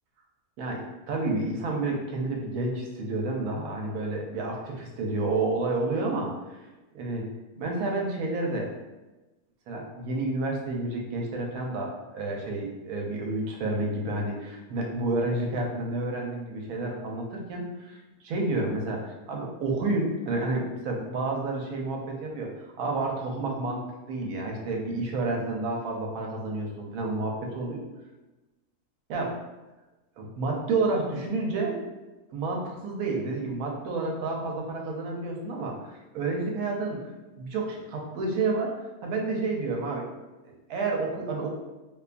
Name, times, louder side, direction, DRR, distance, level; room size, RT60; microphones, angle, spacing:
voice 1, 0.6-6.6 6.9-7.2 7.6-8.7 9.7-22.5 22.8-27.8 29.1-29.3 30.2-31.8 32.3-37.0 37.3-38.7 39.0-40.1 40.4-41.5, right 2 dB, 75° right, 0 dB, 1.0 m, -30 dB
2.8 x 2.2 x 2.4 m, 1.1 s
omnidirectional pair, 1.6 m